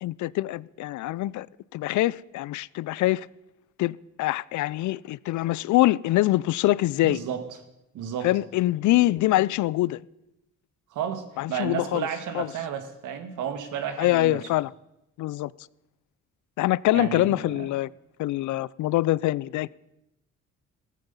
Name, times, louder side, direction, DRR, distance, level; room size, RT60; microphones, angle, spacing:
voice 1, 0.0-1.5 1.7-3.3 3.8-7.2 8.2-10.0 11.4-12.1 12.3-12.5 14.0-14.7 15.2-15.5 16.6-17.9 18.2-19.7, left 16 dB, 75° left, 0.5 m, -24 dB
voice 2, 7.0-7.4 7.9-8.3 10.9-14.4 16.9-17.7, right 8 dB, 85° right, 1.8 m, -32 dB
15.0 x 14.5 x 5.5 m
cardioid pair, 90°, 30 cm